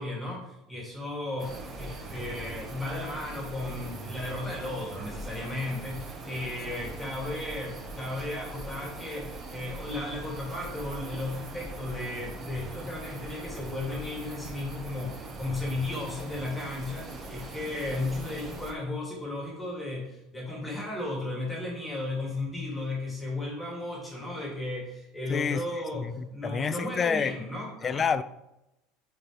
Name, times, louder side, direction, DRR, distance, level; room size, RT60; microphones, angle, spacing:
voice 1, 0.0-1.5 1.8-28.1, left 2 dB, 10° left, 2.5 m, -35 dB
sound 1, 1.4-18.7, right 2 dB, 30° right, 1.2 m, -41 dB
voice 2, 25.3-25.6 25.9-27.3 27.8-28.2, left 6 dB, 30° left, 0.4 m, -28 dB
8.8 x 4.5 x 3.3 m
supercardioid pair, 110°, 0 cm